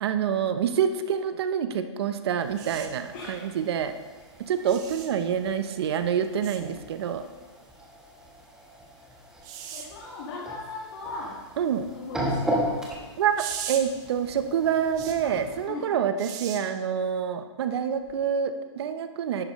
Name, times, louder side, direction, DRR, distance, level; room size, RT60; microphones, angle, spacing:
voice 1, 0.0-3.9 4.5-7.2 11.6-11.9 13.2-19.4, right 8 dB, 60° right, 9 dB, 0.8 m, -27 dB
sound 1, 2.4-15.7, equal, 5° right, 1.2 m, -37 dB
sound 2, 2.6-2.9 4.7-5.1 6.4-6.6 9.4-9.9 13.4-13.8 15.0-15.2 16.2-16.6 18.1-18.2, right 9 dB, 25° right, 0.7 m, -37 dB
voice 2, 9.7-11.4 11.9-13.0 15.2-15.4 15.6-16.0, left 3 dB, 50° left, -4 dB, 1.7 m, -38 dB
11.0 x 8.8 x 3.1 m, 1.3 s
hypercardioid pair, 155°, 15 cm